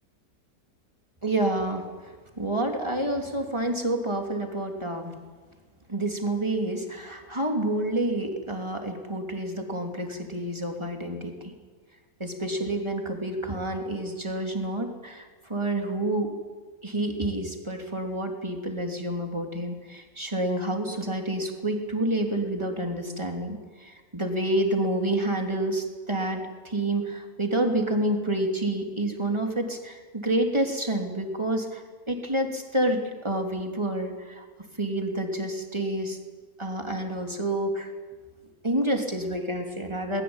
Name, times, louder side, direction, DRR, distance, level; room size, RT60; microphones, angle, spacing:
voice 1, 1.2-5.1 5.9-11.5 12.2-16.3 16.8-34.4 34.8-36.2 36.6-37.9 38.6-40.2, right 1 dB, 15° right, 3 dB, 3.3 m, -28 dB
23.0 x 21.0 x 9.0 m, 1.4 s
omnidirectional pair, 1.7 m